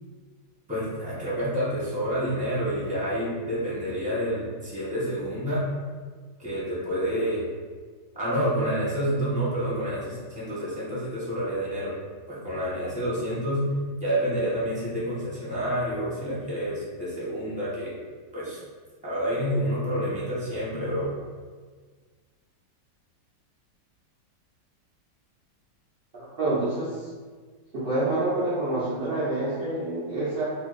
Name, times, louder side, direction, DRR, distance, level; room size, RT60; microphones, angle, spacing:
voice 1, 0.7-5.7 6.4-7.4 8.1-11.9 12.3-13.7 14.0-17.9 18.3-18.6 19.0-21.1, equal, 5° right, -8 dB, 0.8 m, -28 dB
voice 2, 26.1-27.1 27.7-30.5, right 2 dB, 75° right, -10 dB, 0.5 m, -27 dB
2.8 x 2.6 x 3.9 m, 1.5 s
omnidirectional pair, 2.0 m